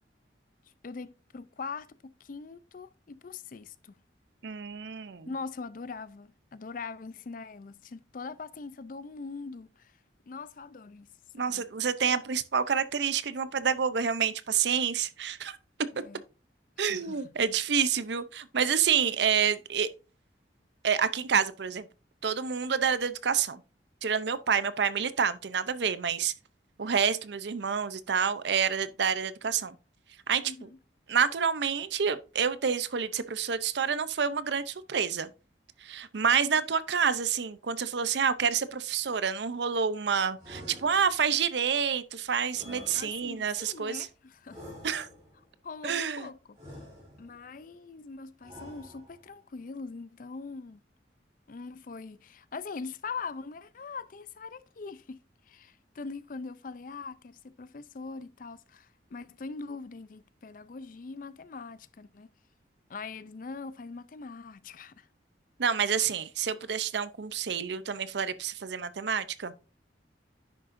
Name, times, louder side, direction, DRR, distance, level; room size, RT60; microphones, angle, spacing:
voice 1, 0.8-4.0 5.2-9.9 10.3-11.1 11.4-11.6 15.9-16.2 16.9-17.2 30.5-30.8 42.9-44.6 45.6-46.6 47.2-50.8 51.5-55.2 55.5-62.3 62.9-65.1, left 4 dB, 45° left, 0.4 m, -42 dB
voice 2, 4.4-5.3 11.3-15.6 16.8-19.9 20.8-21.9 22.2-23.6 24.0-26.3 26.8-29.8 30.3-30.7 31.1-35.3 35.8-44.1 44.8-45.1 45.8-46.3 65.6-69.5, right 7 dB, 70° right, 0.6 m, -28 dB
sound 1, 40.4-41.4 42.5-43.6 44.5-45.4 46.6-47.5 48.4-49.4, equal, 25° right, 4.6 m, -48 dB
10.0 x 6.4 x 2.6 m
head